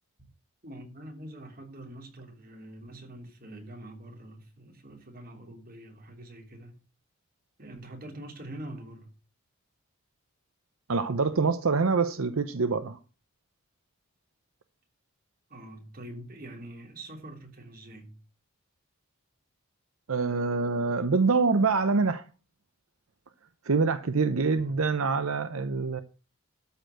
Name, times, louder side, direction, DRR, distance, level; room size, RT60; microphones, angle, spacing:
voice 1, 0.6-6.8 7.6-9.1 15.5-18.2 24.5-24.8, right 1 dB, 45° right, 3.3 m, -45 dB
voice 2, 10.9-13.0 20.1-22.2 23.6-26.0, right 4 dB, 80° right, 0.7 m, -25 dB
13.0 x 4.4 x 7.7 m
head